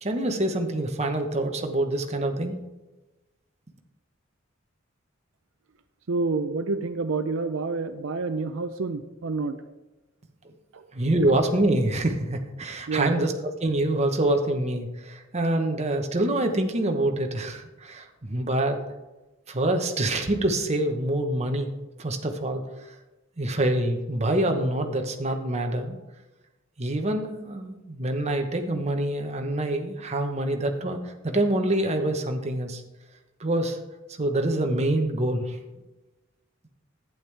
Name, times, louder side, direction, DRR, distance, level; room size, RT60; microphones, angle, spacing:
voice 1, 0.0-2.6 10.9-13.3 13.6-18.8 19.5-21.7 22.0-22.6 23.4-26.0 26.8-32.8 33.4-33.8 34.2-35.6, right 1 dB, 35° right, 5 dB, 1.0 m, -26 dB
voice 2, 6.1-9.6 10.7-10.8 12.9-13.2, right 3 dB, 85° right, 9 dB, 0.6 m, -28 dB
11.5 x 8.9 x 3.4 m, 1.1 s
head